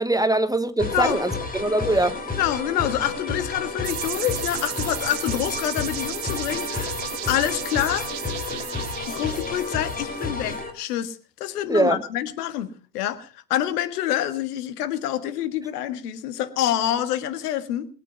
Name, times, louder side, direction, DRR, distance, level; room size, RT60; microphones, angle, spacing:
voice 1, 0.0-2.3 11.7-12.0, right 2 dB, 5° right, 1.0 m, -22 dB
sound 1, 0.8-10.7, left 3 dB, 15° left, 4.9 m, -31 dB
voice 2, 2.4-6.9 7.3-8.1 9.1-17.9, left 11 dB, 65° left, 1.8 m, -27 dB
sound 2, 3.8-10.6, right 18 dB, 60° right, 0.8 m, -35 dB
22.0 x 9.0 x 5.7 m
figure-of-eight pair, 70°, 49 cm